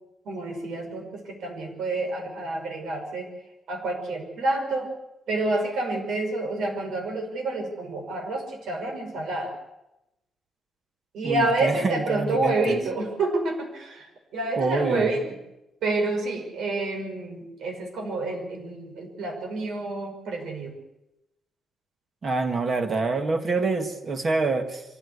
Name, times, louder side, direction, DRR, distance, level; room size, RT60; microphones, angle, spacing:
voice 1, 0.3-3.3 3.7-4.9 5.3-9.5 11.1-15.3 15.8-20.7, right 2 dB, 75° right, 2 dB, 5.4 m, -28 dB
voice 2, 11.2-12.8 14.6-15.2 22.2-24.8, right 3 dB, 30° right, 6 dB, 1.9 m, -26 dB
24.5 x 15.5 x 8.3 m, 0.92 s
wide cardioid pair, 180°, 0 cm